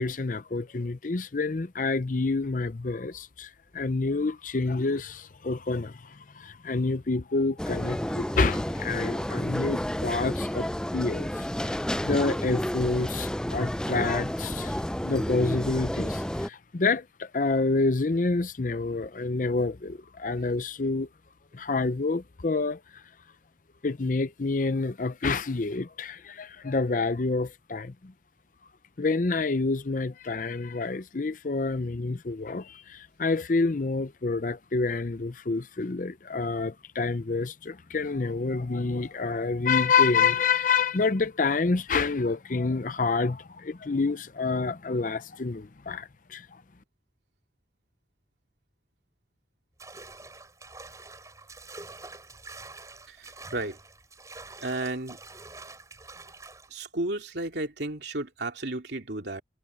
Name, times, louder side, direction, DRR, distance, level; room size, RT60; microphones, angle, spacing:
voice 1, 0.0-21.1 21.5-23.0 23.8-28.1 29.0-46.5, left 3 dB, 45° left, 0.6 m, -28 dB
sound 1, 7.6-16.5, equal, 5° left, 0.4 m, -31 dB
sound 2, 49.8-56.7, right 3 dB, 20° right, 5.2 m, -46 dB
voice 2, 53.1-53.8 54.6-55.2 56.7-59.4, right 2 dB, 70° right, 3.0 m, -33 dB
head